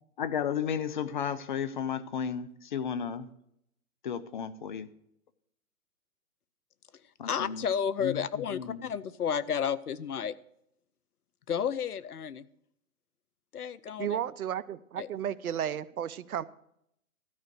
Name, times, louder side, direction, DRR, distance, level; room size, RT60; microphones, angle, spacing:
voice 1, 0.2-3.3 4.0-4.9 7.2-7.6 8.0-8.9, left 8 dB, 35° left, 14 dB, 0.6 m, -33 dB
voice 2, 7.2-10.3 11.5-12.5 13.5-14.2 15.0-15.1, left 7 dB, 85° left, 18 dB, 0.7 m, -32 dB
voice 3, 14.0-16.4, right 10 dB, 75° right, 18 dB, 0.7 m, -33 dB
13.0 x 5.0 x 8.0 m, 0.75 s
hypercardioid pair, 140°, 44 cm